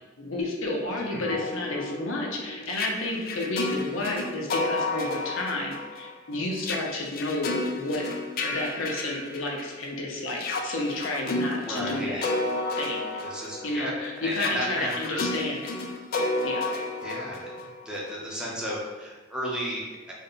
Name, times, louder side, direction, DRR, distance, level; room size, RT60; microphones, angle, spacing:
voice 1, 0.2-8.0 8.4-12.2 12.8-13.0 13.6-15.6 16.4-16.7, left 2 dB, 85° left, -1 dB, 0.7 m, -31 dB
sound 1, 1.0-9.9 10.3-18.1, left 2 dB, 50° left, 0.3 m, -32 dB
voice 2, 11.6-12.3 13.2-15.2 17.0-17.6 17.8-20.1, equal, 5° right, -5 dB, 0.7 m, -33 dB
3.5 x 2.2 x 4.0 m, 1.3 s
head